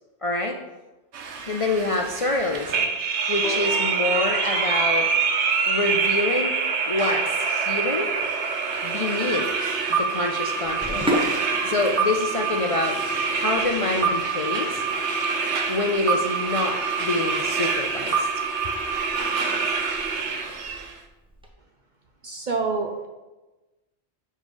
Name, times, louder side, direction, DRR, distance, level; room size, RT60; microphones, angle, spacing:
voice 1, 0.2-0.6 1.4-2.9 3.3-5.1 5.7-6.6 6.9-8.1 8.8-9.5 9.9-11.3 11.6-13.0 13.3-14.8 15.7-18.3, left 2 dB, 50° left, 1 dB, 0.4 m, -26 dB
sound 1, 1.1-20.9, right 5 dB, 80° right, 1.0 m, -25 dB
sound 2, 3.4-7.3 8.2-8.3, left 3 dB, 80° left, 1.3 m, -41 dB
Sink (filling or washing), 10.6-21.5, equal, 5° right, 0.7 m, -35 dB
voice 2, 22.2-23.1, right 4 dB, 50° right, 2 dB, 0.6 m, -27 dB
7.3 x 3.1 x 5.3 m, 1.1 s
omnidirectional pair, 1.2 m